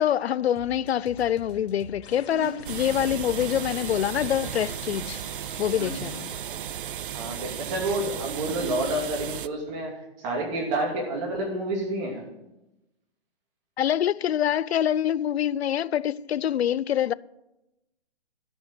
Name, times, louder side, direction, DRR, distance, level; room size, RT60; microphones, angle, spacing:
voice 1, 0.0-5.2 5.6-6.3 13.8-17.1, left 10 dB, 75° left, 0.5 m, -25 dB
sound 1, 0.6-5.5, left 5 dB, 20° left, 1.6 m, -46 dB
sound 2, 2.0-6.4, left 4 dB, 50° left, 4.0 m, -48 dB
sound 3, 2.6-9.5, right 10 dB, 55° right, 0.5 m, -35 dB
voice 2, 7.1-12.2, right 1 dB, 30° right, 2.8 m, -29 dB
12.5 x 6.4 x 7.5 m
hypercardioid pair, 150°, 32 cm